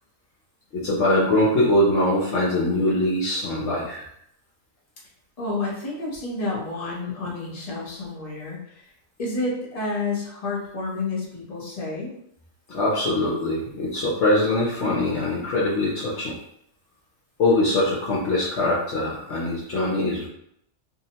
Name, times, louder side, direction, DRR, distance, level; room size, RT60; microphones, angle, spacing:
voice 1, 0.7-4.0 12.7-16.4 17.4-20.3, left 1 dB, 65° left, -5 dB, 0.8 m, -22 dB
voice 2, 5.4-8.8 9.2-12.1, left 3 dB, 35° left, -4 dB, 0.7 m, -30 dB
2.8 x 2.0 x 2.7 m, 0.74 s
omnidirectional pair, 1.5 m